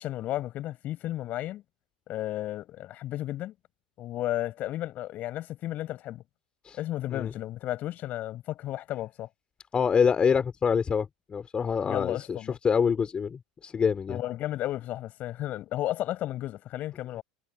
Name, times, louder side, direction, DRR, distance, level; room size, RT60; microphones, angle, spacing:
voice 1, 0.0-1.6 2.1-3.5 4.0-6.2 6.7-9.3 11.9-12.6 14.1-17.2, left 14 dB, 40° left, 6.6 m, -33 dB
voice 2, 9.7-12.4 12.6-14.2, left 6 dB, 25° left, 3.9 m, -26 dB
figure-of-eight pair, 80°, 4 cm